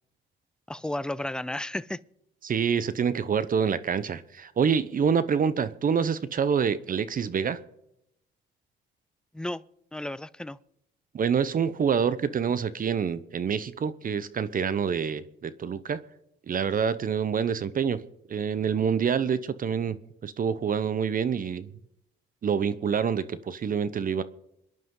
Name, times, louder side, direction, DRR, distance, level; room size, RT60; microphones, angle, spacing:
voice 1, 0.7-2.0 9.3-9.6 9.9-10.6, left 1 dB, 5° left, 0.4 m, -33 dB
voice 2, 2.4-7.6 11.1-16.0 16.5-18.0 18.3-20.0 20.2-21.7 22.4-24.2, right 7 dB, 45° right, 0.8 m, -26 dB
26.5 x 10.5 x 3.8 m
cardioid pair, 90°, 20 cm